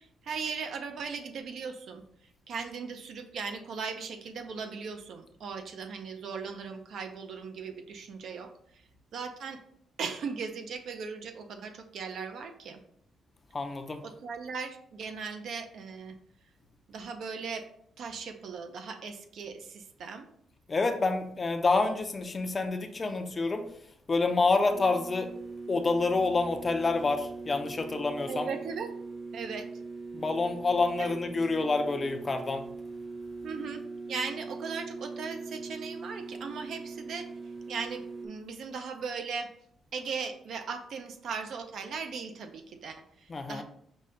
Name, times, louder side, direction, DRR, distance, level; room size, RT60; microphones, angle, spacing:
voice 1, 0.0-2.0 2.5-8.8 9.1-9.6 10.0-12.8 14.0-16.2 16.9-17.7 18.0-20.3 28.3-28.9 29.3-29.7 31.0-31.1 33.4-33.8 34.1-37.3 37.7-39.5 39.9-43.6, right 5 dB, 65° right, 6 dB, 0.5 m, -38 dB
voice 2, 13.5-14.0 20.7-23.7 24.1-25.3 25.7-28.5 30.1-32.6 43.3-43.6, left 3 dB, 30° left, 6 dB, 0.5 m, -28 dB
sound 1, 24.7-38.3, right 4 dB, 15° right, 0.8 m, -41 dB
5.4 x 2.2 x 3.7 m, 0.68 s
cardioid pair, 125°, 0 cm